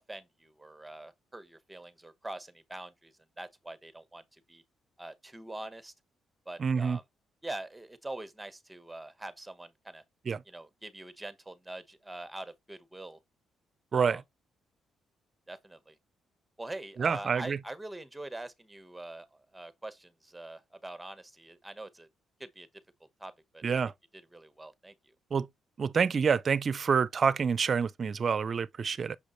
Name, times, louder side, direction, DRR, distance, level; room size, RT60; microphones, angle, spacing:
voice 1, 0.0-4.6 5.0-5.9 6.5-7.0 7.4-10.0 10.5-13.2 13.9-14.2 15.5-16.0 16.6-22.1 22.4-22.7 23.2-23.6 24.3-25.1, right 2 dB, 10° right, 1.2 m, -44 dB
voice 2, 6.6-7.0 10.3-10.4 13.9-14.2 17.0-17.6 23.6-23.9 25.3-25.5 25.8-29.2, right 6 dB, 45° right, 0.5 m, -27 dB
6.7 x 5.1 x 3.1 m
cardioid pair, 90°, 0 cm